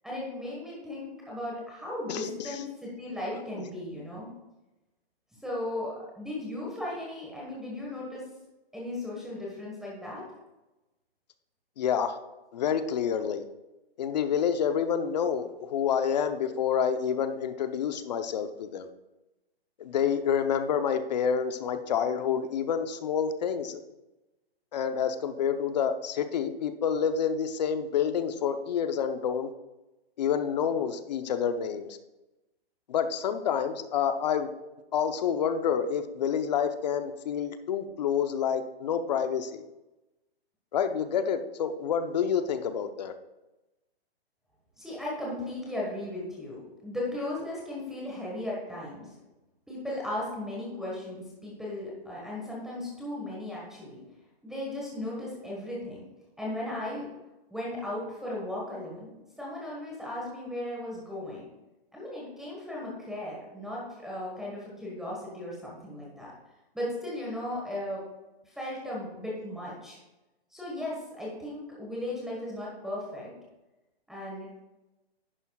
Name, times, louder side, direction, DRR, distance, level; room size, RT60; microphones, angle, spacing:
voice 1, 0.0-4.3 5.3-8.2 8.7-10.2 44.8-49.1 49.7-54.0 54.4-56.0 56.4-57.1 57.5-61.4 61.9-66.3 66.7-68.0 68.4-70.0 70.5-73.3 74.1-74.6, left 1 dB, ahead, -5 dB, 1.4 m, -36 dB
voice 2, 2.1-2.5 11.8-12.2 12.5-13.4 14.0-18.9 19.8-23.8 24.7-29.5 30.2-32.0 32.9-34.5 34.9-39.6 40.7-43.1, left 7 dB, 45° left, 9 dB, 0.8 m, -28 dB
11.0 x 9.3 x 2.4 m, 1.0 s
hypercardioid pair, 160°, 31 cm